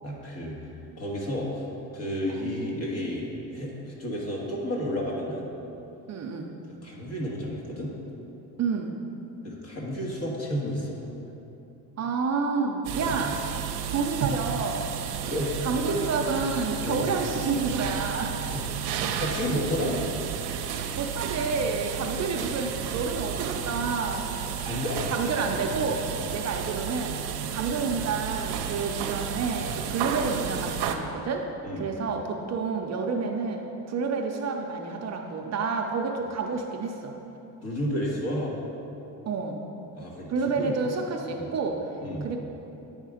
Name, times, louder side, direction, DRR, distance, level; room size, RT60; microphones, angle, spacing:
voice 1, 0.0-0.6 1.0-1.6 1.9-5.5 6.8-7.9 9.4-11.0 15.2-16.0 16.4-16.5 16.8-17.0 18.5-18.6 19.1-20.0 24.6-25.4 26.2-26.3 27.3-27.5 28.7-28.8 29.8-29.9 31.6-31.9 37.6-38.5 39.9-40.7 41.3-41.5 42.0-42.3, equal, 40° left, -3 dB, 1.6 m, -31 dB
voice 2, 6.1-6.5 8.6-9.0 12.0-13.4 13.9-14.9 15.6-18.4 20.7-24.4 25.1-27.2 27.5-31.5 31.8-33.6 33.9-37.1 39.2-39.6 40.3-41.9 42.2-42.4, right 4 dB, 45° right, 2 dB, 0.6 m, -29 dB
sound 1, 12.8-30.9, right 8 dB, 80° right, 0.6 m, -32 dB
9.3 x 3.6 x 5.0 m, 3.0 s
cardioid pair, 115°, 38 cm